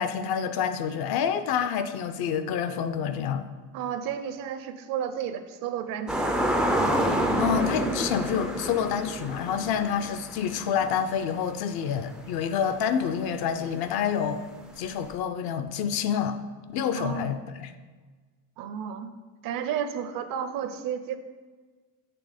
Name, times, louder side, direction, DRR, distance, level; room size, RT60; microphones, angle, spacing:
voice 1, 0.0-3.5 7.4-14.4 14.8-16.4 16.7-17.7, left 8 dB, 55° left, 10 dB, 0.6 m, -28 dB
voice 2, 3.7-6.6 16.9-17.4 18.6-19.1 19.4-21.2, right 8 dB, 50° right, 10 dB, 0.6 m, -32 dB
sound 1, 6.1-11.5 11.9-12.0 15.1-15.2, right 1 dB, ahead, 0.3 m, -28 dB
7.7 x 3.5 x 4.9 m, 1.4 s
supercardioid pair, 110°, 45 cm